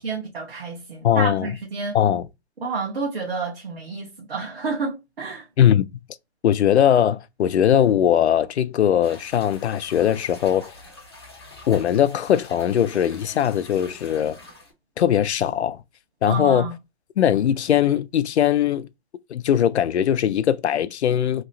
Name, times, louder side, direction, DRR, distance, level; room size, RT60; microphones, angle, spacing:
voice 1, 0.0-2.0 2.6-5.5 16.2-16.7, right 4 dB, 55° right, 1.1 m, -29 dB
voice 2, 1.0-1.5 1.9-2.3 5.6-5.9 6.4-10.7 11.7-14.4 15.0-15.8 16.2-16.7 17.2-18.9 19.3-21.4, left 10 dB, 75° left, 0.5 m, -20 dB
sound 1, 9.0-14.7, left 2 dB, 25° left, 0.5 m, -45 dB
2.9 x 2.9 x 2.6 m
hypercardioid pair, 180°, 34 cm